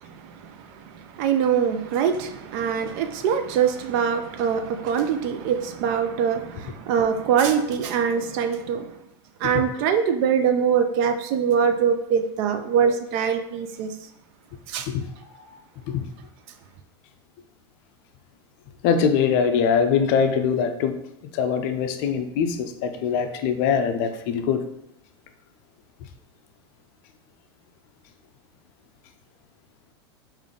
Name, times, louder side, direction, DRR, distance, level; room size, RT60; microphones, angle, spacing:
voice 1, 0.0-8.9 9.4-14.0 14.7-14.9, right 7 dB, 50° right, 0.4 m, -23 dB
voice 2, 18.8-21.0 21.3-24.6, left 6 dB, 50° left, 0.5 m, -22 dB
3.5 x 2.6 x 3.6 m
supercardioid pair, 140°, 14 cm